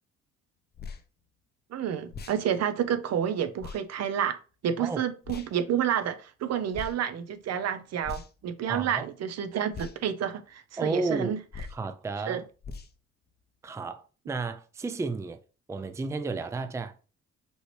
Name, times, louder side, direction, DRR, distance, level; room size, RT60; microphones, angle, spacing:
sound 1, 0.7-1.0 2.1-2.4 3.6-3.8 5.2-5.5 6.7-7.0 8.0-8.4 9.7-10.0 11.5-11.8 12.6-12.9, left 5 dB, 35° left, 0.7 m, -40 dB
voice 1, 1.7-4.4 4.6-11.4 12.3-12.4, right 9 dB, 60° right, 0.7 m, -29 dB
voice 2, 8.7-9.1 10.8-11.3 11.7-12.4 13.6-15.4 15.7-16.9, right 3 dB, 10° right, 0.4 m, -32 dB
5.4 x 3.0 x 3.2 m
cardioid pair, 90°, 30 cm